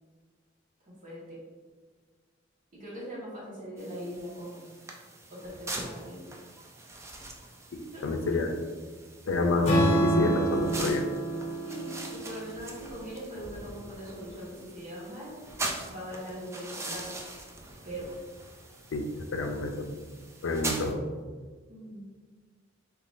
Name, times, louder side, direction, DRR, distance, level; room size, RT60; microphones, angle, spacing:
voice 1, 0.9-1.4 2.8-4.7 5.3-6.2 7.9-8.5 11.6-15.3 15.8-17.1 17.8-18.1 21.7-22.0, equal, 40° right, -8 dB, 1.5 m, -41 dB
sound 1, 3.8-20.9, right 2 dB, 15° right, 0.3 m, -42 dB
voice 2, 7.7-8.5 9.3-11.0 18.9-19.0 19.3-19.9 20.4-21.0, left 3 dB, 85° left, 5 dB, 0.4 m, -28 dB
Strum, 9.6-13.8, right 1 dB, 35° left, 1.2 m, -28 dB
3.7 x 3.0 x 2.5 m, 1.5 s
head